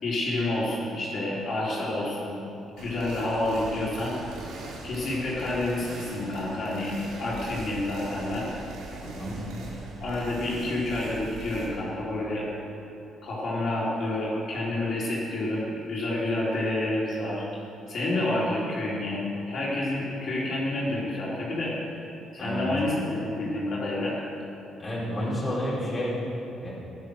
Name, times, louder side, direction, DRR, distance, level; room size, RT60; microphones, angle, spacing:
voice 1, 0.0-2.4 2.8-4.1 4.8-8.5 10.0-12.5 13.2-17.5 17.9-21.7 22.3-24.2, left 1 dB, 45° left, -6 dB, 3.7 m, -29 dB
sound 1, 2.8-11.7, right 2 dB, 90° right, 3.3 m, -41 dB
voice 2, 24.8-26.2 26.6-26.7, equal, 20° left, -7 dB, 3.9 m, -30 dB
16.0 x 11.0 x 6.4 m, 2.8 s
cardioid pair, 155°, 0 cm